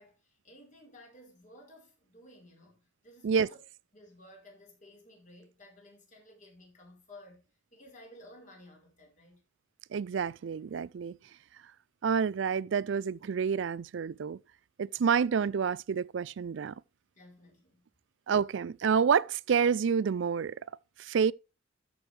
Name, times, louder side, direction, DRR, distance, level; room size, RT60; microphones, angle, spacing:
voice 1, 0.0-3.6 3.9-7.5 7.7-9.4 17.1-17.9, left 1 dB, 40° left, 4.6 m, -55 dB
voice 2, 9.9-11.2 12.0-14.4 14.8-16.7 18.3-20.5 21.0-21.3, right 6 dB, 70° right, 0.4 m, -28 dB
13.5 x 6.4 x 3.3 m
head